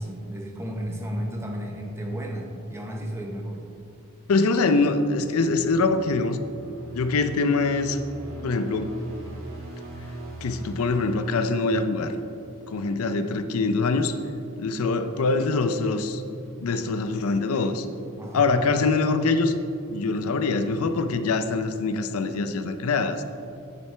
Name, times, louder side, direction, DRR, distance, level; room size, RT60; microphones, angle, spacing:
voice 1, 0.0-3.7 13.3-13.4 18.2-18.4, equal, 10° right, 0 dB, 0.8 m, -33 dB
voice 2, 4.3-6.4 6.9-8.0 8.4-8.9 10.4-12.1 12.7-14.1 14.6-16.2 16.6-17.9 18.3-19.6 19.9-23.2, left 3 dB, 85° left, 9 dB, 0.5 m, -24 dB
sound 1, 5.3-12.5, right 2 dB, 75° right, 2.2 m, -41 dB
9.8 x 7.5 x 3.3 m, 2.6 s
head